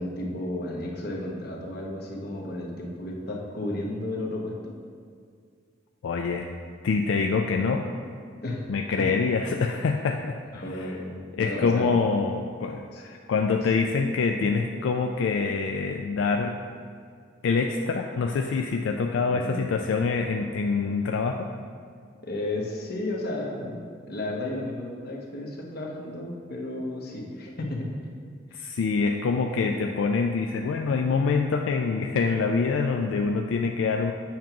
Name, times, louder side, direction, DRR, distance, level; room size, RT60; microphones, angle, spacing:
voice 1, 0.0-4.7 8.4-8.7 9.0-9.1 10.5-11.9 12.9-13.0 13.6-13.7 19.3-19.6 22.2-23.8 24.1-27.9 28.5-28.7, left 1 dB, 55° left, -1 dB, 1.0 m, -33 dB
voice 2, 6.0-6.5 6.8-7.8 8.7-10.4 10.7-10.9 11.3-16.5 17.4-21.5 28.5-34.1, left 4 dB, 85° left, 4 dB, 0.3 m, -25 dB
7.2 x 3.0 x 5.8 m, 2.1 s
head